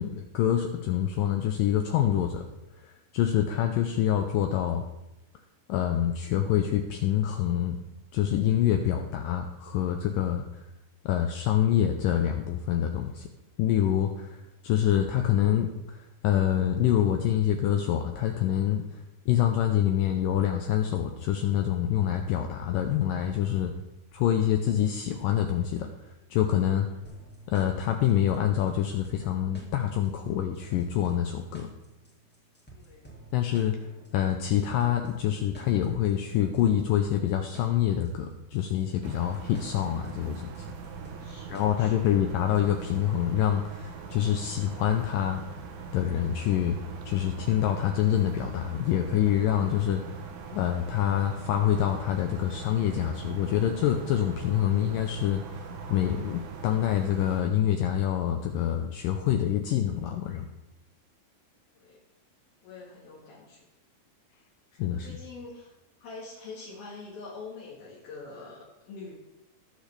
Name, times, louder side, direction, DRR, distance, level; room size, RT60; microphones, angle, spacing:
voice 1, 0.0-2.4 3.1-4.8 5.7-7.8 8.1-10.4 11.1-13.3 13.6-14.4 14.6-15.7 16.2-18.8 19.3-23.7 24.1-25.9 26.3-26.9 27.5-31.7 33.3-33.8 34.1-40.5 41.5-45.4 45.9-46.8 47.1-50.0 50.5-55.4 55.9-60.5 64.8-65.1, left 10 dB, 85° left, 5 dB, 2.0 m, -26 dB
sound 1, 27.0-43.0, right 2 dB, 5° left, 0.9 m, -51 dB
voice 2, 32.7-33.1 41.2-42.0 61.7-62.0 62.6-63.6 64.9-65.7 66.0-69.1, left 3 dB, 70° left, -5 dB, 3.3 m, -45 dB
sound 2, 39.0-57.4, right 5 dB, 70° right, 2.4 m, -42 dB
19.5 x 6.5 x 3.3 m, 0.95 s
omnidirectional pair, 4.6 m